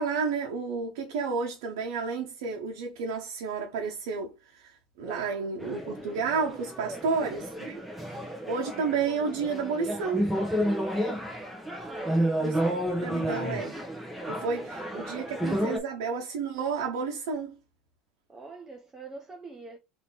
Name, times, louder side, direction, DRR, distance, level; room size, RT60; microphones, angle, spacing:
voice 1, 0.0-10.3 12.4-12.5 13.0-13.8 14.3-17.6, right 5 dB, 85° right, 1.0 m, -31 dB
sound 1, 5.6-15.8, equal, ahead, 1.2 m, -31 dB
voice 2, 11.8-12.4 14.5-15.8 18.3-19.8, right 3 dB, 20° right, 0.9 m, -45 dB
4.0 x 2.9 x 4.0 m
supercardioid pair, 115°, 2 cm